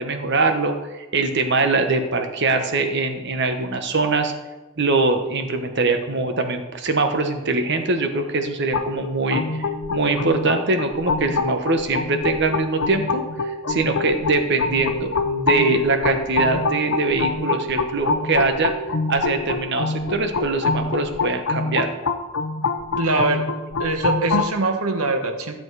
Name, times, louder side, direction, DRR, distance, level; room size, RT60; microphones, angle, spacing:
voice 1, 0.0-4.3 4.8-9.6 9.9-18.7 19.1-21.9, right 3 dB, 50° right, 6 dB, 1.1 m, -22 dB
sound 1, 8.7-24.5, left 3 dB, 65° left, 0.8 m, -25 dB
voice 2, 22.9-23.4 23.8-25.5, right 2 dB, 75° right, 6 dB, 1.3 m, -22 dB
14.0 x 7.2 x 4.8 m, 1.2 s
head